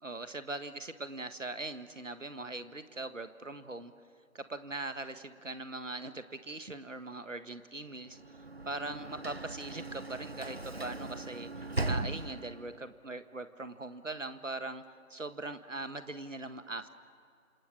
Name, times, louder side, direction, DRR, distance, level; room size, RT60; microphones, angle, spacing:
voice 1, 0.0-3.9 4.3-8.4 8.6-16.9, right 2 dB, 60° right, 11 dB, 1.6 m, -41 dB
Sliding door / Slam, 8.1-12.8, right 2 dB, 45° right, 0.8 m, -38 dB
29.0 x 27.5 x 6.5 m, 2.3 s
figure-of-eight pair, 175°, 42 cm